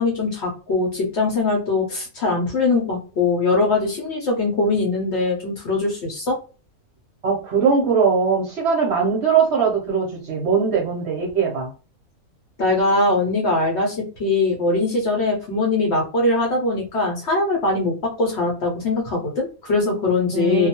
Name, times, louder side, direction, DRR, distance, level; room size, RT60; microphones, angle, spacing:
voice 1, 0.0-6.4 12.6-20.7, left 3 dB, 60° left, -1 dB, 0.8 m, -21 dB
voice 2, 7.2-11.7 20.3-20.7, right 5 dB, 55° right, -3 dB, 0.8 m, -20 dB
2.4 x 2.2 x 2.8 m, 0.35 s
omnidirectional pair, 1.6 m